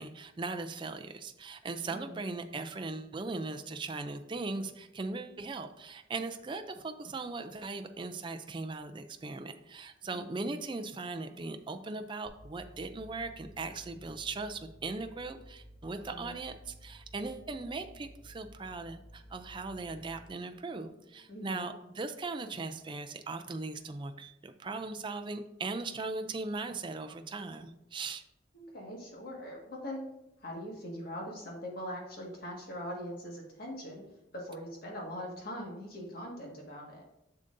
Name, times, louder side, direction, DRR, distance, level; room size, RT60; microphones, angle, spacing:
voice 1, 0.0-28.2, right 3 dB, 25° right, 7 dB, 0.4 m, -39 dB
voice 2, 1.9-2.3 10.1-10.6 16.1-16.4 21.3-21.7 28.5-30.0 30.4-34.0 34.3-37.0, equal, 50° left, -1 dB, 1.7 m, -42 dB
sound 1, 12.2-21.2, equal, 45° right, 1.8 m, -54 dB
7.2 x 6.7 x 2.6 m, 0.88 s
head